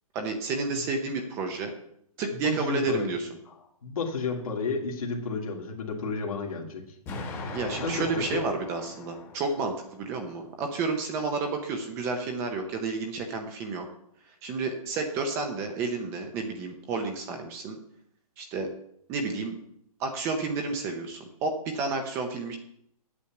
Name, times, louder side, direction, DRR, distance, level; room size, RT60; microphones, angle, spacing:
voice 1, 0.1-1.7 2.2-3.3 7.5-13.9 14.4-17.8 18.4-18.7 19.1-19.6 20.0-22.6, right 3 dB, 15° right, 4 dB, 0.7 m, -31 dB
voice 2, 2.3-3.1 3.5-7.0 7.8-8.4, left 4 dB, 65° left, -2 dB, 2.1 m, -32 dB
Explosion, 7.1-10.0, left 3 dB, 10° left, 1.1 m, -39 dB
8.6 x 7.9 x 5.9 m, 0.71 s
hypercardioid pair, 170°, 19 cm